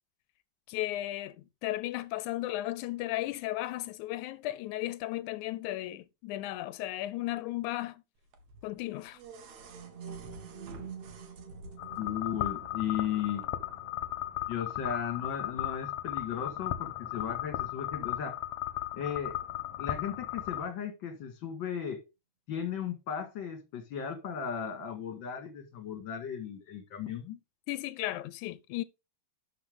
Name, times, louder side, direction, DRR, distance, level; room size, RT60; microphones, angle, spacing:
voice 1, 0.7-8.0 8.6-9.2 27.7-28.8, left 16 dB, 85° left, 2.0 m, -35 dB
sound 1, 8.3-12.1 13.4-13.5, right 2 dB, 85° right, 2.9 m, -50 dB
sound 2, 9.1-17.2, right 7 dB, 55° right, 3.6 m, -50 dB
sound 3, 11.8-20.7, left 14 dB, 70° left, 2.0 m, -36 dB
voice 2, 12.0-13.4 14.5-18.4 18.9-19.4 19.8-22.0 22.5-27.4, left 8 dB, 45° left, 2.4 m, -36 dB
12.0 x 5.9 x 3.7 m
omnidirectional pair, 3.4 m